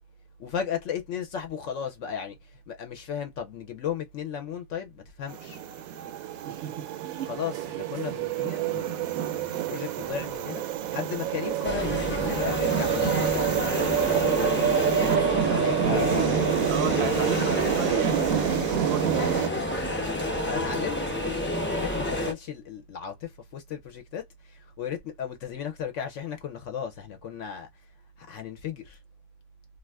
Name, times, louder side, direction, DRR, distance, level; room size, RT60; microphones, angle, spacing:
voice 1, 0.4-5.6 7.3-10.6 10.9-14.8 15.5-16.4 20.4-27.7 28.2-29.0, left 8 dB, 70° left, 0.8 m, -35 dB
sound 1, 5.3-19.5, right 10 dB, 90° right, 1.0 m, -27 dB
voice 2, 6.4-7.3 15.8-19.9, right 8 dB, 60° right, 0.7 m, -35 dB
sound 2, 11.6-22.3, left 1 dB, 15° left, 0.4 m, -29 dB
2.4 x 2.4 x 3.2 m
omnidirectional pair, 1.4 m